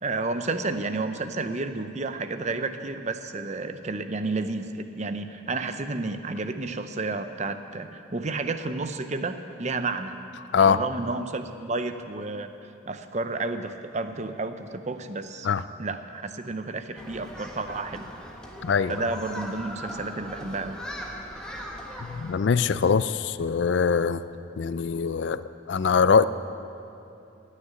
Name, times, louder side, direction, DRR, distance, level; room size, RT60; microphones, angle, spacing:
voice 1, 0.0-10.2 10.6-12.5 12.9-15.5 15.8-18.1 18.9-20.8, right 3 dB, 35° right, 9 dB, 0.6 m, -31 dB
Human group actions, 17.0-22.3, equal, 5° left, 1.3 m, -39 dB
voice 2, 18.6-19.0 22.0-24.2 24.6-26.2, left 6 dB, 60° left, 14 dB, 0.4 m, -22 dB
17.0 x 6.6 x 9.8 m, 2.7 s
head